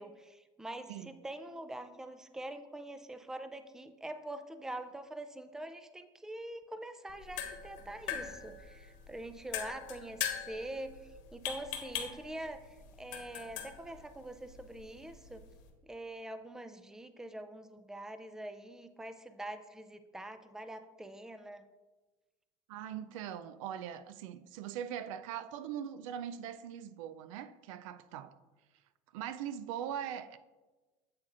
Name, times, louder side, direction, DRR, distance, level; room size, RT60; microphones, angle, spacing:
voice 1, 0.0-11.0 11.3-15.4 15.8-21.6, right 1 dB, 5° right, 0.4 m, -44 dB
sound 1, 7.1-15.7, left 8 dB, 80° left, 1.1 m, -42 dB
voice 2, 22.7-28.3 29.1-30.4, right 9 dB, 90° right, 0.4 m, -41 dB
7.8 x 7.3 x 2.5 m
supercardioid pair, 115°, 16 cm